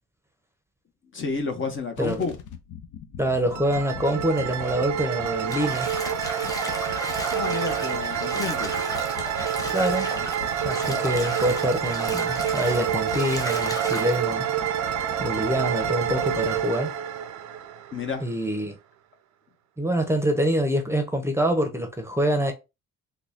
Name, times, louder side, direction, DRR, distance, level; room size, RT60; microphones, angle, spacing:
voice 1, 1.1-2.4 7.3-8.7 17.9-18.3, left 4 dB, 40° left, 0.8 m, -30 dB
sound 1, 2.0-16.6, left 8 dB, 80° left, 0.7 m, -42 dB
voice 2, 3.2-5.9 9.7-10.1 10.6-14.5 15.2-16.9 18.2-18.7 19.8-22.5, equal, 10° right, 0.7 m, -25 dB
sound 2, 3.5-18.3, right 9 dB, 70° right, 0.6 m, -28 dB
Bathtub (filling or washing), 5.4-14.2, equal, 10° left, 1.0 m, -35 dB
3.8 x 2.2 x 3.5 m
cardioid pair, 90°, 30 cm